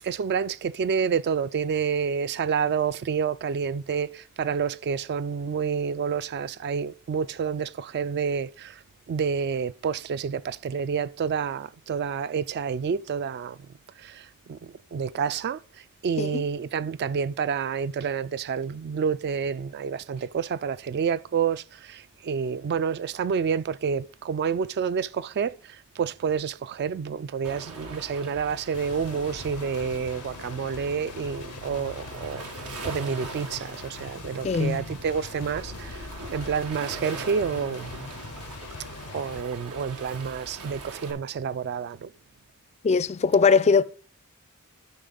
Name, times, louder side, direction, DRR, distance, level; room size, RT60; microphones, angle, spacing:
voice 1, 0.0-8.8 9.1-13.6 14.0-15.6 16.0-25.6 26.0-38.0 39.1-42.1, right 6 dB, 50° right, 0.3 m, -29 dB
Waves surf, 27.4-41.1, right 2 dB, 90° right, 1.9 m, -41 dB
sound 1, 28.7-39.4, left 5 dB, 90° left, 0.6 m, -43 dB
voice 2, 34.4-34.9 42.8-43.8, left 5 dB, 30° left, 0.4 m, -21 dB
11.5 x 5.7 x 3.8 m
head